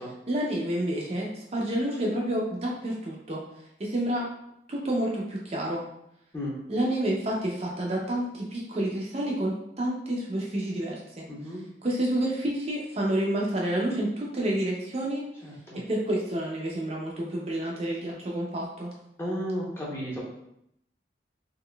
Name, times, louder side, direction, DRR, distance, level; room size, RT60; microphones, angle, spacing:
voice 1, 0.3-3.4 3.8-4.3 4.7-5.8 6.7-11.3 11.8-15.2 15.9-18.9, right 1 dB, 35° right, -3 dB, 0.5 m, -29 dB
voice 2, 11.3-11.6 15.4-15.8 19.2-20.2, equal, 15° left, -5 dB, 0.7 m, -33 dB
3.7 x 2.9 x 2.2 m, 0.77 s
head